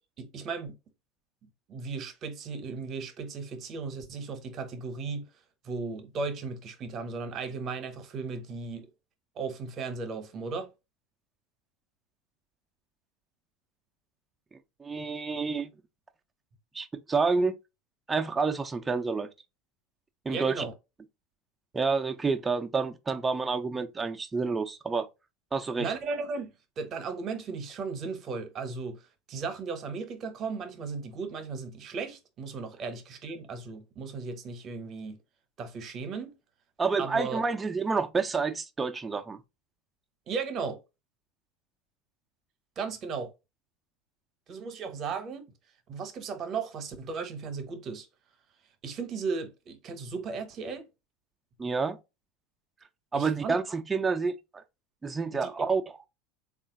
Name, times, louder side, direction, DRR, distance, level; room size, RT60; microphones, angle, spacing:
voice 1, 0.2-0.8 1.7-5.3 5.6-8.9 9.4-10.7 20.3-20.7 25.8-26.5 26.8-35.2 35.6-36.3 37.0-37.4 40.3-40.8 42.8-43.3 44.5-45.4 45.9-48.1 48.8-50.9 53.1-53.6 55.4-55.5, right 4 dB, 45° right, 1.0 m, -36 dB
voice 2, 14.8-15.7 16.7-17.5 18.1-19.3 20.2-20.6 21.7-25.1 25.5-25.9 36.8-39.4 51.6-52.0 53.1-54.6 55.0-55.8, right 4 dB, 20° right, 0.6 m, -29 dB
3.7 x 2.5 x 3.9 m
hypercardioid pair, 85°, 0 cm